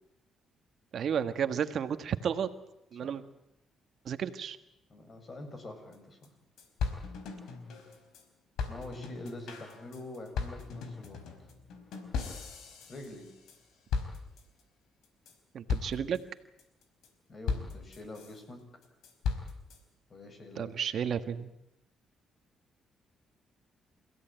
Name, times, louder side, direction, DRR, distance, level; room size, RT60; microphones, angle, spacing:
voice 1, 0.9-2.5 2.9-3.2 4.0-4.6 15.5-16.2 20.6-21.5, right 8 dB, 60° right, 10 dB, 1.5 m, -32 dB
voice 2, 4.9-6.3 8.7-11.2 12.9-13.3 17.3-18.6 20.1-20.7, left 1 dB, 40° left, 6 dB, 7.3 m, -45 dB
sound 1, 5.9-6.0 6.2-6.3 6.6-8.2 8.6-13.6 13.9-14.6 15.0-15.3 15.7-16.2 16.6-17.1 17.5-18.4 18.8-19.8, left 5 dB, 80° left, 4.6 m, -37 dB
29.0 x 16.0 x 9.1 m, 0.81 s
cardioid pair, 90°, 0 cm